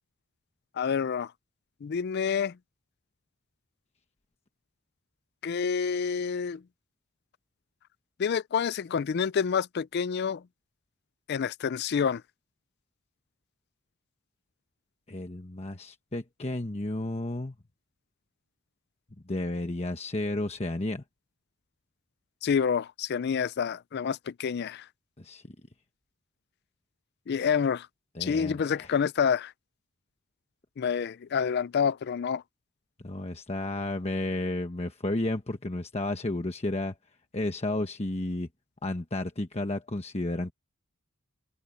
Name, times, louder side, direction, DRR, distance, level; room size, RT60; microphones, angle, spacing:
voice 1, 0.8-1.3 1.8-2.6 5.4-6.6 8.2-10.4 11.3-12.2 22.4-24.8 27.3-27.9 28.2-29.5 30.8-32.4, left 6 dB, 50° left, 0.4 m, -28 dB
voice 2, 15.1-17.5 19.3-21.0 25.2-25.4 28.1-28.9 33.0-36.9 37.3-38.5 38.8-40.5, left 2 dB, 30° left, 1.1 m, -32 dB
head